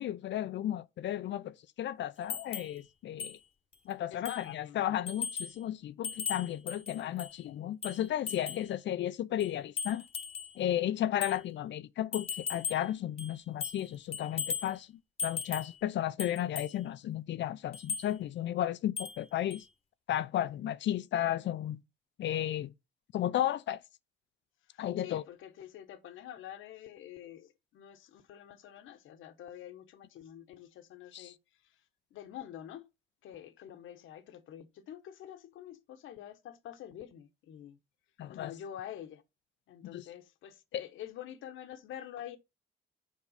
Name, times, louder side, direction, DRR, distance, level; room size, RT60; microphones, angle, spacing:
voice 1, 0.0-3.4 3.9-10.1 10.6-19.6 20.1-21.8 22.2-22.7 23.1-23.8 24.8-25.2 31.1-31.3 38.2-38.5 39.8-40.0 40.7-40.8, left 12 dB, 65° left, 0.6 m, -34 dB
sound 1, 2.3-2.8 3.2-3.4 3.7-3.8 4.2-4.5 5.1-5.6 6.0-7.4 7.8-8.7 9.4-10.5 11.2-11.4 12.1-12.9 13.2-13.9 14.1-14.7 15.2-15.8 16.2-16.7 17.7-18.1 19.0-19.2 19.5-19.6, left 6 dB, 30° left, 1.2 m, -38 dB
voice 2, 4.1-5.0 24.7-31.8 32.1-32.9 33.2-37.8 38.3-39.2 39.7-42.4, left 10 dB, 80° left, 1.2 m, -47 dB
7.3 x 4.7 x 5.6 m
cardioid pair, 90°, 20 cm